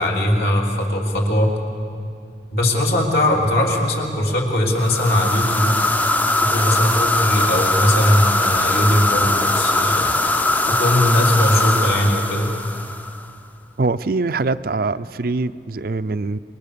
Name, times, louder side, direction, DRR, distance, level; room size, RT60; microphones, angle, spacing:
voice 1, 0.0-1.5 2.5-5.8 6.4-10.2 10.6-12.5, left 1 dB, 60° left, -1 dB, 3.4 m, -19 dB
Wind Long, 4.8-13.3, left 2 dB, 10° left, 0.6 m, -20 dB
voice 2, 13.8-16.4, right 3 dB, 55° right, 13 dB, 0.5 m, -23 dB
28.0 x 22.5 x 6.9 m, 2.4 s
head